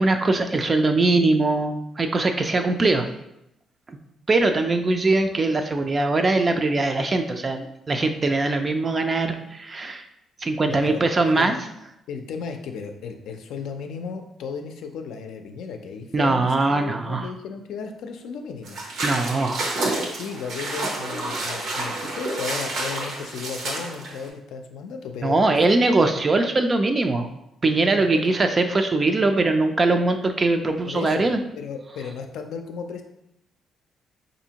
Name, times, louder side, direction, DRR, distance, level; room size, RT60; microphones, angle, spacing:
voice 1, 0.0-3.1 4.3-10.0 10.4-11.5 16.1-17.3 19.0-19.6 25.2-27.3 27.6-31.4, right 2 dB, 30° right, 6 dB, 0.3 m, -21 dB
voice 2, 10.6-11.6 12.1-18.8 20.1-25.8 28.1-28.3 30.8-33.0, left 5 dB, 80° left, 5 dB, 0.4 m, -35 dB
sound 1, 18.6-24.3, right 2 dB, 75° right, 0.9 m, -29 dB
4.1 x 2.6 x 2.8 m, 0.83 s
cardioid pair, 90°, 0 cm